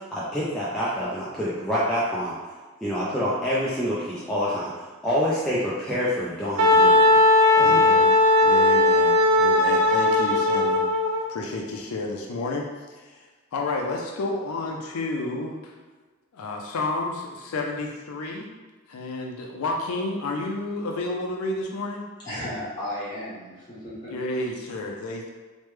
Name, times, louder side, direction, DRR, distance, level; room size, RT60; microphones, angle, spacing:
voice 1, 0.1-2.3 2.8-7.2 7.6-8.0, equal, 5° left, -9 dB, 0.3 m, -27 dB
Wind instrument woodwind instrument, 6.6-11.2, left 1 dB, 85° right, 0.5 m, -18 dB
voice 2, 7.6-8.1 8.4-10.8 11.3-15.7 16.3-18.5 18.9-22.1 24.1-25.3, left 2 dB, 80° left, 1 dB, 0.4 m, -31 dB
voice 3, 22.2-24.1, left 1 dB, 20° left, -11 dB, 1.2 m, -34 dB
3.1 x 2.1 x 3.1 m, 1.3 s
head